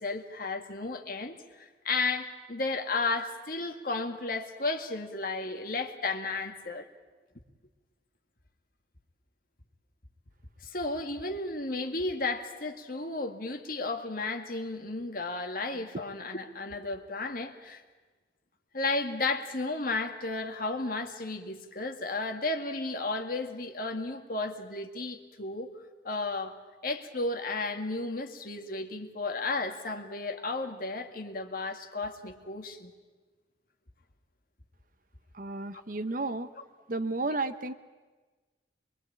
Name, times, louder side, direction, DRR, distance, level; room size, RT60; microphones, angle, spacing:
voice 1, 0.0-6.9 10.6-17.8 18.7-25.7 26.0-26.5 26.8-32.9, left 3 dB, 50° left, 5 dB, 2.1 m, -33 dB
voice 2, 35.3-36.5 36.9-37.7, right 2 dB, 50° right, 11 dB, 1.0 m, -32 dB
24.5 x 23.5 x 8.8 m, 1.3 s
head